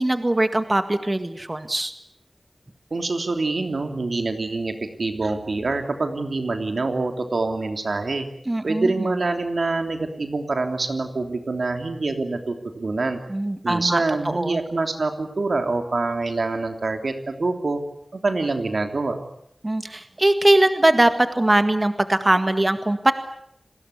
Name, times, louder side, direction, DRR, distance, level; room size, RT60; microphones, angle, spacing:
voice 1, 0.0-1.9 8.5-9.1 13.3-14.6 19.6-23.1, right 1 dB, 30° right, 9 dB, 1.9 m, -21 dB
voice 2, 2.9-8.3 8.6-13.2 13.6-17.8 18.1-19.2, right 3 dB, 90° right, 6 dB, 3.1 m, -25 dB
30.0 x 20.0 x 8.5 m, 0.74 s
wide cardioid pair, 70°, 0 cm